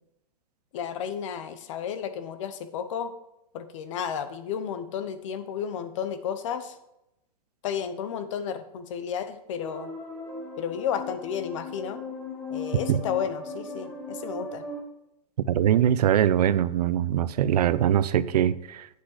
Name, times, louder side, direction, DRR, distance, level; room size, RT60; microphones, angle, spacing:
voice 1, 0.7-3.1 3.5-6.8 7.6-9.9 10.6-12.0 12.5-14.6, left 8 dB, 50° left, 11 dB, 0.9 m, -32 dB
sound 1, 9.6-14.8, left 3 dB, 5° left, 1.1 m, -37 dB
voice 2, 15.5-18.9, right 10 dB, 85° right, 16 dB, 0.5 m, -22 dB
8.4 x 6.2 x 4.8 m, 0.87 s
hypercardioid pair, 160°, 20 cm